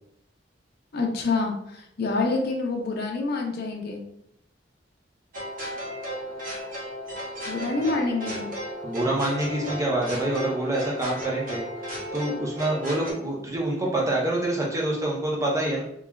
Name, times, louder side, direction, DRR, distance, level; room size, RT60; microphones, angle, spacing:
voice 1, 0.9-4.0 7.5-8.5, left 3 dB, 60° left, 1 dB, 0.5 m, -27 dB
sound 1, 5.3-13.1, equal, 50° right, 0.8 m, -34 dB
voice 2, 8.8-11.6 12.1-15.8, right 1 dB, 20° right, -3 dB, 0.6 m, -26 dB
3.1 x 2.3 x 2.3 m, 0.73 s
head